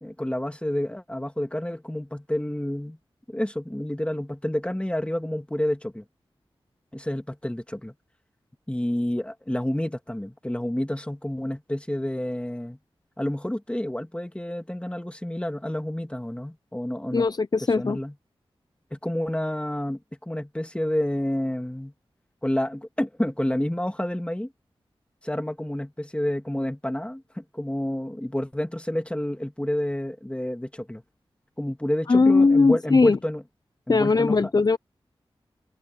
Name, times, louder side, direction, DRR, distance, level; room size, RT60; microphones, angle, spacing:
voice 1, 0.0-3.0 3.3-6.0 6.9-7.9 8.7-12.8 13.2-17.3 17.8-18.1 18.9-21.9 22.4-24.5 25.2-31.0 31.6-33.4 33.9-34.5, left 1 dB, 10° left, 2.7 m, -29 dB
voice 2, 17.1-18.0 32.1-33.2 33.9-34.8, left 3 dB, 45° left, 0.5 m, -19 dB
cardioid pair, 45°, 10 cm